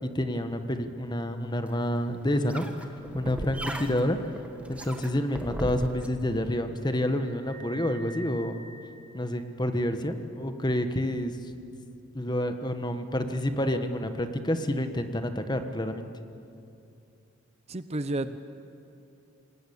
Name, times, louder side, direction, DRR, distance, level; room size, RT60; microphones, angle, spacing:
voice 1, 0.0-2.6 3.1-4.2 4.7-8.6 9.1-11.3 12.1-16.1, left 1 dB, 20° left, 8 dB, 1.3 m, -28 dB
sound 1, 1.7-6.1, right 1 dB, 5° right, 1.5 m, -38 dB
sound 2, 7.0-9.7, right 2 dB, 60° right, 4.5 m, -48 dB
voice 2, 17.7-18.4, right 2 dB, 30° right, 11 dB, 0.7 m, -31 dB
28.0 x 19.5 x 8.7 m, 2.7 s
head